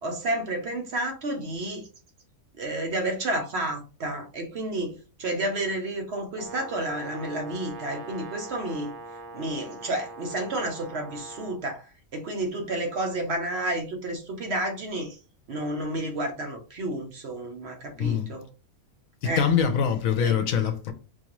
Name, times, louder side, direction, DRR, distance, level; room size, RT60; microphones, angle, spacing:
voice 1, 0.0-1.9 2.6-8.9 9.3-11.9 12.1-15.2 15.5-18.5 19.2-19.5 20.2-20.4, right 1 dB, 55° right, 0.9 m, -31 dB
Brass instrument, 6.3-11.6, right 2 dB, 85° right, 1.2 m, -42 dB
voice 2, 19.4-20.9, left 7 dB, 75° left, 1.0 m, -23 dB
4.4 x 2.5 x 2.9 m
omnidirectional pair, 1.5 m